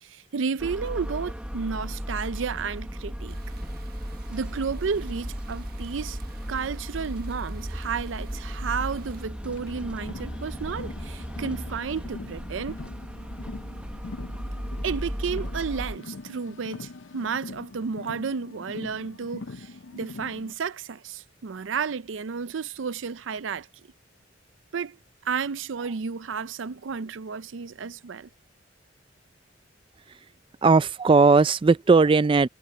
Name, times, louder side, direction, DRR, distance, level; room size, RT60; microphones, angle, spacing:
voice 1, 0.0-3.3 4.3-6.2 6.5-12.8 14.8-23.7 24.7-25.0 25.2-28.3, right 5 dB, 80° right, 0.5 m, -32 dB
sound 1, 0.6-16.0, equal, 5° right, 1.0 m, -35 dB
sound 2, 3.3-9.3, right 2 dB, 50° right, 1.1 m, -46 dB
Car, 9.4-20.5, left 3 dB, 80° left, 0.6 m, -42 dB
voice 2, 30.6-32.5, right 4 dB, 25° right, 0.3 m, -18 dB
head